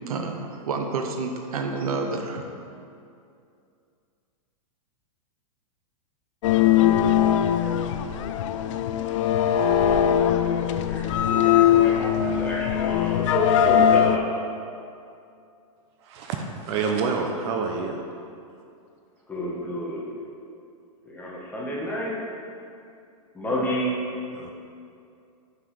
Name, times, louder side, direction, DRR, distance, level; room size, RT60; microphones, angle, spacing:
voice 1, 0.1-2.5, right 4 dB, 85° right, 4 dB, 1.0 m, -29 dB
sound 1, 6.4-14.2, left 9 dB, 60° left, 0.5 m, -21 dB
voice 2, 9.8-10.6 10.9-14.3 19.3-20.0 21.0-22.2 23.3-24.0, equal, 10° left, -5 dB, 1.7 m, -30 dB
voice 3, 16.0-18.0 24.3-24.5, right 5 dB, 50° right, 3 dB, 0.8 m, -28 dB
5.7 x 5.7 x 6.5 m, 2.5 s
hypercardioid pair, 135°, 18 cm